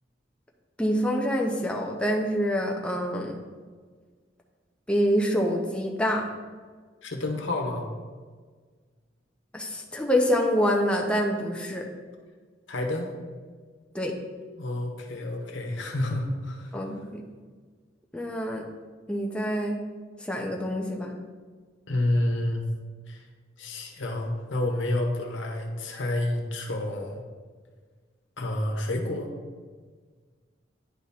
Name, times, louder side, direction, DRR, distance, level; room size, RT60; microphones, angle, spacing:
voice 1, 0.8-3.4 4.9-6.2 9.5-11.9 13.9-14.1 16.7-17.2 18.1-18.6 19.1-19.8 20.2-21.1, equal, 5° left, 0 dB, 0.7 m, -26 dB
voice 2, 7.0-7.9 12.7-13.1 14.6-16.7 21.9-22.6 23.1-23.2 23.6-27.2 28.4-29.3, left 1 dB, 90° left, 2 dB, 1.1 m, -29 dB
10.0 x 3.5 x 4.2 m, 1.5 s
head